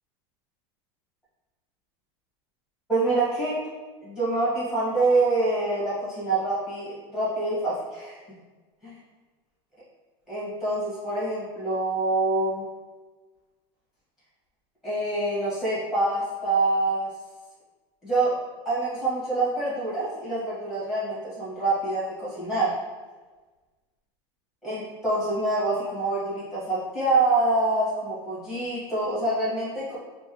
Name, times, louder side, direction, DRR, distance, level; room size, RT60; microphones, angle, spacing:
voice 1, 2.9-3.6 4.0-8.2 8.8-8.9 10.3-12.6 14.8-17.1 18.0-18.4 18.6-22.8 24.6-30.0, right 2 dB, 5° right, -10 dB, 1.5 m, -26 dB
3.4 x 2.7 x 3.0 m, 1.3 s
supercardioid pair, 175°, 14 cm